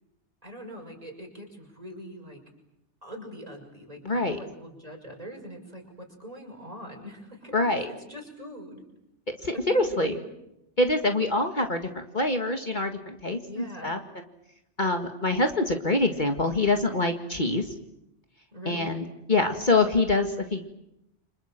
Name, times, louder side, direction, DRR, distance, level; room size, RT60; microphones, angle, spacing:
voice 1, 0.4-2.4 3.0-8.8 9.5-10.3 13.4-14.0 18.5-19.0, right 1 dB, 30° right, 2 dB, 6.5 m, -41 dB
voice 2, 4.0-4.4 7.5-7.9 9.4-10.1 10.8-14.0 14.8-17.7 18.7-20.7, left 2 dB, 40° left, 5 dB, 2.1 m, -25 dB
29.5 x 26.0 x 7.6 m, 0.84 s
omnidirectional pair, 1.2 m